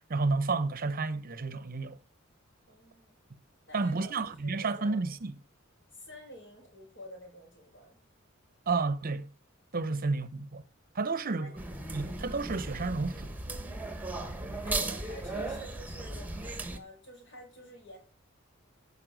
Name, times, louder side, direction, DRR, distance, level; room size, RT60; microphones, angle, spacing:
voice 1, 0.1-2.0 3.7-5.3 8.7-9.3 9.7-10.6 10.9-11.5 11.9-13.4, right 3 dB, 45° right, 0.8 m, -31 dB
voice 2, 2.7-3.2 3.7-4.2 4.4-5.0 5.9-8.0 9.8-10.1 11.4-11.6 14.1-16.3 16.7-18.0, equal, 55° left, 5.0 m, -49 dB
sound 1, 11.6-16.8, right 2 dB, 10° right, 1.3 m, -36 dB
11.0 x 5.5 x 7.7 m
head